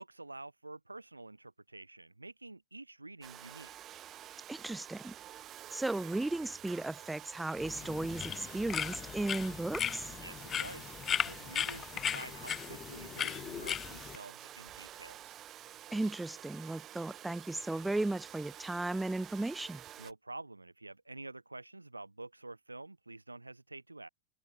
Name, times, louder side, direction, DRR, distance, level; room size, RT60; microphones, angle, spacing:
voice 1, 0.0-3.7 10.1-15.4 20.0-24.1, right 2 dB, 85° right, 1.5 m, -49 dB
Domestic sounds home sounds, 3.2-20.1, right 12 dB, 30° right, 6.1 m, -50 dB
voice 2, 4.5-5.1 5.7-10.1 15.9-19.8, right 2 dB, 5° right, 0.5 m, -35 dB
sound 1, 7.6-14.2, left 9 dB, 25° left, 1.3 m, -37 dB
figure-of-eight pair, 90°, 0 cm